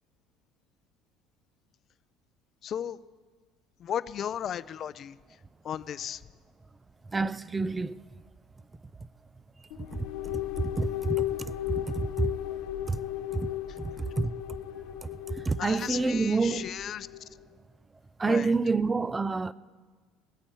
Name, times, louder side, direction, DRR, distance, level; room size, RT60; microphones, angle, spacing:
voice 1, 2.6-3.0 3.8-5.2 5.6-6.2 15.6-17.1 18.2-18.5, left 9 dB, 45° left, 0.5 m, -35 dB
voice 2, 7.1-8.0 9.9-10.0 10.6-11.2 11.7-12.3 12.9-13.0 13.3-13.5 13.8-14.3 15.0-16.7 18.2-19.5, right 4 dB, 20° right, 0.4 m, -28 dB
sound 1, 9.7-17.3, left 14 dB, 75° left, 0.8 m, -35 dB
23.0 x 8.7 x 4.6 m
supercardioid pair, 105°, 0 cm